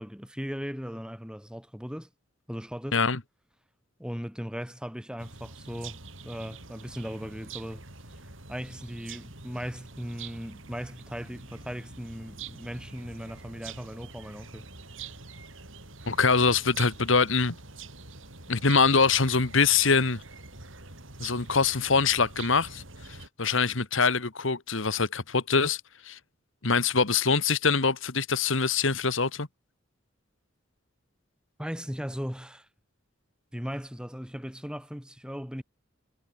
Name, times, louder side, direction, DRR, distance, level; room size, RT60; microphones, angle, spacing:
voice 1, 0.0-2.1 2.5-3.0 4.0-7.8 8.5-14.6 31.6-32.7 33.5-35.6, equal, 5° right, 5.6 m, -38 dB
sound 1, 5.2-23.3, right 4 dB, 70° right, 7.3 m, -45 dB
voice 2, 16.1-17.6 18.5-20.2 21.2-22.8 23.1-25.8 26.1-26.2 26.6-29.5, left 4 dB, 65° left, 1.7 m, -24 dB
head